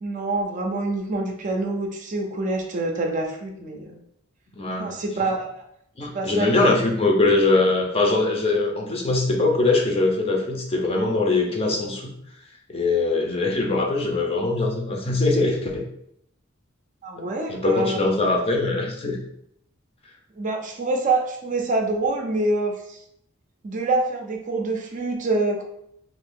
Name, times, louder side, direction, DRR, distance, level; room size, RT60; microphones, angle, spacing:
voice 1, 0.0-4.0 4.8-5.5 6.1-6.5 6.8-6.9 17.0-18.0 20.4-23.0 23.6-25.6, right 2 dB, 35° right, 2 dB, 0.5 m, -26 dB
voice 2, 4.5-4.9 6.0-12.1 12.7-15.8 17.5-19.2, left 2 dB, 25° left, 0 dB, 0.5 m, -22 dB
2.8 x 2.5 x 3.6 m, 0.74 s
head